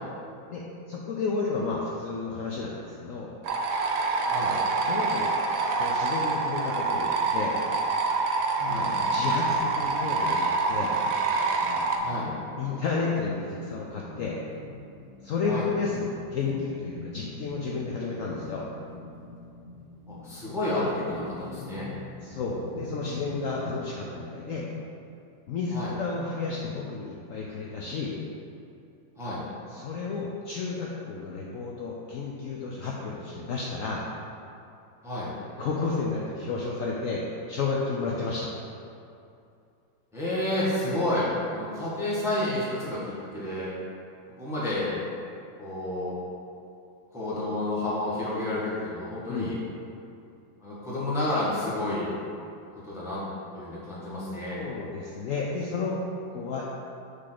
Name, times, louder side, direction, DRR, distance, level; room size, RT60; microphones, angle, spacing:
voice 1, 0.5-3.3 4.8-5.4 5.6-7.6 9.0-10.9 12.6-14.4 15.2-18.6 22.2-24.7 25.5-28.2 29.7-34.0 35.6-38.5 49.3-49.6 54.5-56.0 56.3-56.7, left 4 dB, 75° left, -3 dB, 0.7 m, -32 dB
sound 1, 3.4-12.0, right 3 dB, 85° right, 1.4 m, -26 dB
sound 2, 8.6-24.0, left 3 dB, 50° right, 0.3 m, -43 dB
voice 2, 12.0-12.3 15.5-15.7 20.1-21.9 25.7-25.9 29.2-29.4 35.0-35.3 40.1-43.7 44.4-44.9 45.6-46.1 47.1-49.6 50.6-52.1 52.8-53.2 53.5-54.6, left 1 dB, ahead, -8 dB, 1.2 m, -30 dB
6.5 x 3.8 x 5.9 m, 2.6 s
omnidirectional pair, 2.1 m